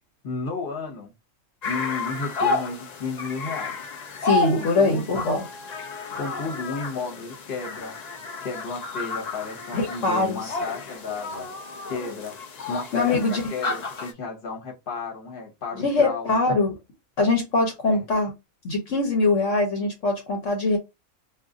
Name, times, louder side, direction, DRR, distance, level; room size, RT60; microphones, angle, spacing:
voice 1, 0.2-1.1 1.6-3.8 4.5-5.2 6.1-8.0 8.4-11.5 11.9-12.4 12.7-16.6 17.9-18.0, left 4 dB, 45° left, 1.2 m, -33 dB
sound 1, 1.6-14.1, left 3 dB, 90° left, 0.3 m, -32 dB
voice 2, 4.2-5.4 9.7-10.5 12.9-13.4 15.8-16.7 17.2-18.3 18.6-20.8, left 3 dB, 65° left, 1.1 m, -22 dB
2.6 x 2.5 x 3.6 m
omnidirectional pair, 1.4 m